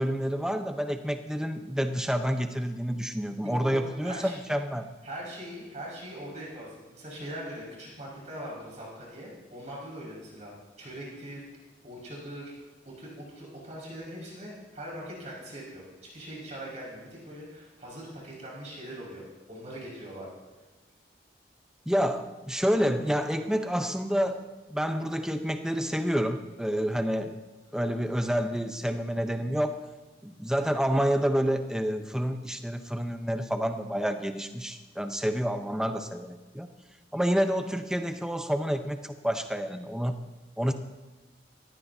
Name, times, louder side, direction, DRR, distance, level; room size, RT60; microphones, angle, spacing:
voice 1, 0.0-4.9 21.9-24.4 24.7-27.4 27.7-29.8 30.2-36.7 37.1-40.1 40.6-40.7, equal, 5° right, 7 dB, 0.7 m, -28 dB
voice 2, 3.4-4.4 5.0-11.4 11.8-12.5 12.9-15.8 16.1-19.2 19.5-20.3, right 1 dB, 40° right, -5 dB, 5.3 m, -41 dB
18.5 x 16.0 x 2.7 m, 1.2 s
head